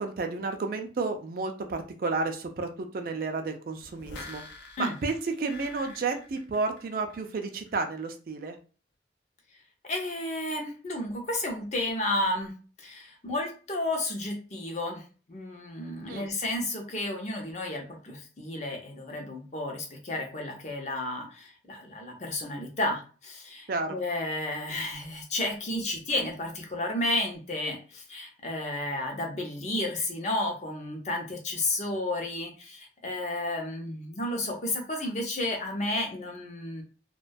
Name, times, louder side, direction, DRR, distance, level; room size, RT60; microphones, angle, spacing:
voice 1, 0.0-4.4 4.8-8.6 16.1-16.3 23.7-24.0, right 3 dB, 50° right, 5 dB, 0.3 m, -31 dB
sound 1, 3.8-7.3 7.7-7.8, left 3 dB, 85° left, 0.6 m, -46 dB
voice 2, 9.8-12.5 12.8-15.0 15.3-36.8, left 1 dB, 40° left, 2 dB, 0.5 m, -32 dB
2.2 x 2.2 x 2.5 m, 0.37 s
head